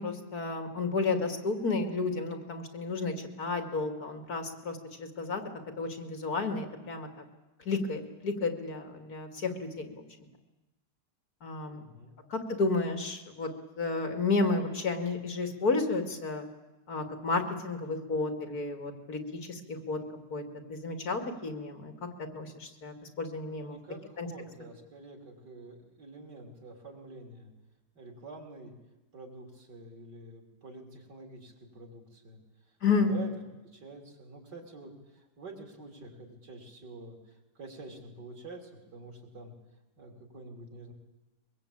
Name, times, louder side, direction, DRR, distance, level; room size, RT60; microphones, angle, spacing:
voice 1, 0.0-5.4 5.8-7.1 7.7-10.0 11.4-11.8 12.3-13.5 13.8-16.4 16.9-20.0 20.3-20.4 20.7-21.9 22.2-23.8 24.2-24.3 32.8-33.2, left 3 dB, 65° left, 6 dB, 2.9 m, -32 dB
voice 2, 11.6-12.2 23.5-27.5 27.9-28.7 29.1-32.4 32.9-33.3 33.6-39.5 40.0-40.9, right 2 dB, 85° right, 2 dB, 4.3 m, -47 dB
22.5 x 22.5 x 8.8 m, 1.1 s
omnidirectional pair, 1.8 m